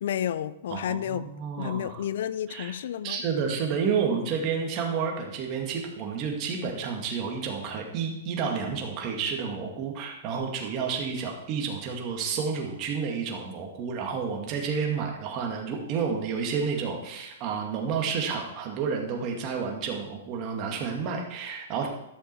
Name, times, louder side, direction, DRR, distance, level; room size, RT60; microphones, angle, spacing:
voice 1, 0.0-1.3 1.6-3.2, left 10 dB, 65° left, 0.5 m, -31 dB
voice 2, 0.7-2.0 2.5-2.7 3.0-21.9, right 6 dB, 35° right, 2.1 m, -30 dB
12.0 x 6.8 x 4.7 m
hypercardioid pair, 135°, 0 cm